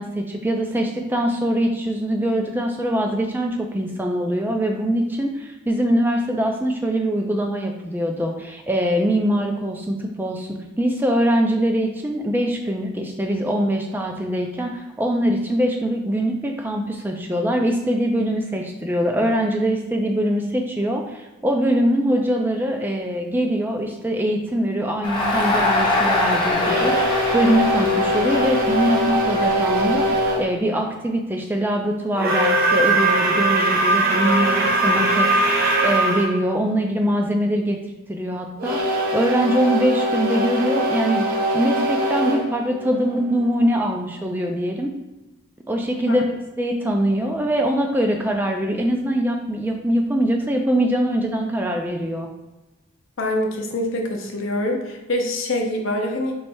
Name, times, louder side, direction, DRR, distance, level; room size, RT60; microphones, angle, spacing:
voice 1, 0.0-37.8 38.1-41.2 41.5-44.9 45.7-46.3 46.6-52.3, equal, 10° right, 2 dB, 0.3 m, -23 dB
Crowd, 25.0-30.2, left 2 dB, 20° left, 0.7 m, -24 dB
sound 1, 26.6-30.5 32.1-36.3 38.6-43.5, right 1 dB, 45° right, 0.8 m, -21 dB
voice 2, 53.2-56.3, left 1 dB, 60° left, 2 dB, 0.7 m, -25 dB
3.1 x 3.1 x 4.5 m, 1.1 s
head